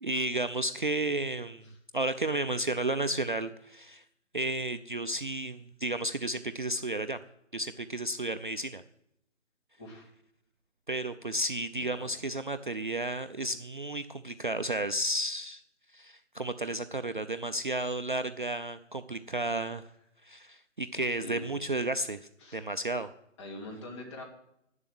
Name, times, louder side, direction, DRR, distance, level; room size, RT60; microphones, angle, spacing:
voice 1, 0.0-1.7 1.9-4.0 4.3-7.2 7.5-8.8 10.9-15.6 15.9-19.9 20.2-22.2 22.5-23.1, right 2 dB, 40° right, 10 dB, 0.5 m, -32 dB
voice 2, 9.8-10.1 11.8-12.1 21.0-21.5 22.4-22.6 23.4-24.2, left 2 dB, 20° left, 0 dB, 2.4 m, -44 dB
11.0 x 8.7 x 7.6 m, 0.80 s
figure-of-eight pair, 155°, 39 cm